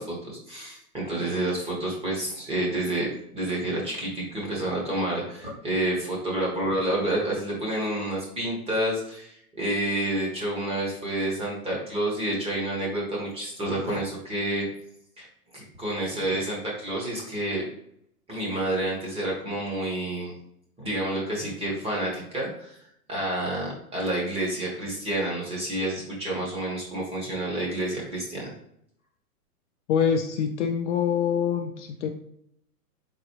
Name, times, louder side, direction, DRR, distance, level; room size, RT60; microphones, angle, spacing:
voice 1, 0.0-14.6 15.2-15.3 15.5-17.6 18.3-20.3 20.8-22.8 23.1-28.5, right 1 dB, 10° right, -3 dB, 1.2 m, -29 dB
voice 2, 29.9-32.1, left 7 dB, 50° left, 4 dB, 0.5 m, -25 dB
4.1 x 4.0 x 3.1 m, 0.72 s
hypercardioid pair, 140°, 46 cm